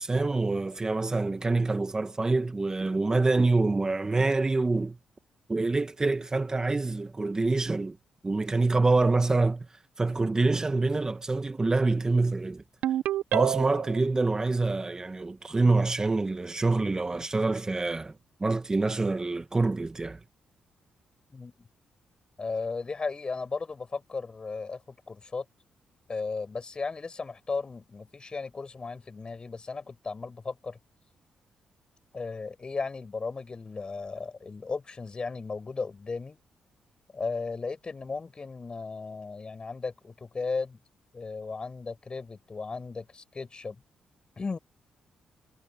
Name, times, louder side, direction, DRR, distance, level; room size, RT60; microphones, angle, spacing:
voice 1, 0.0-5.0 5.5-8.0 8.2-9.7 10.0-12.6 13.3-18.1 18.4-20.2, right 3 dB, 25° right, 1.7 m, -26 dB
Ringtone, 12.8-14.0, right 13 dB, 80° right, 0.9 m, -28 dB
voice 2, 21.3-21.7 22.4-25.4 26.1-30.8 32.1-36.4 37.1-40.8 41.1-43.8 44.4-44.6, left 4 dB, 40° left, 7.6 m, -35 dB
supercardioid pair, 55°, 2 cm